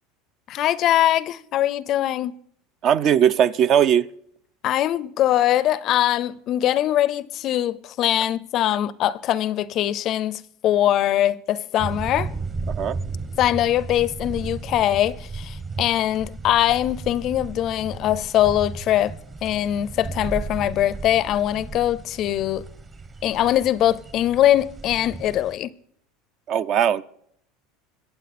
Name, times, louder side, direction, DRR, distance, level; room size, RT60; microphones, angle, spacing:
voice 1, 0.5-2.4 4.6-12.3 13.4-19.1 19.4-22.6 23.2-25.7, left 12 dB, 45° left, 0.5 m, -22 dB
voice 2, 2.8-4.1 12.8-13.0 26.5-27.0, right 9 dB, 45° right, 0.5 m, -19 dB
sound 1, 11.8-25.5, right 4 dB, 25° right, 1.0 m, -34 dB
23.5 x 7.9 x 4.2 m
supercardioid pair, 130°, 0 cm